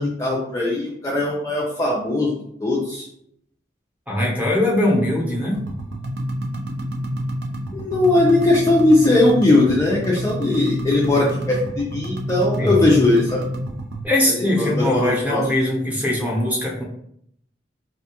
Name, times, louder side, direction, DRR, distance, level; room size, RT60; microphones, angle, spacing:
voice 1, 0.0-2.3 2.6-3.1 7.7-13.4 14.6-15.4, left 2 dB, 20° left, -4 dB, 0.4 m, -19 dB
voice 2, 4.1-5.6 12.6-12.9 14.0-16.8, left 1 dB, 10° right, -4 dB, 0.8 m, -21 dB
sound 1, 5.5-14.0, equal, 70° right, 0.4 m, -28 dB
2.6 x 2.3 x 2.8 m, 0.71 s
head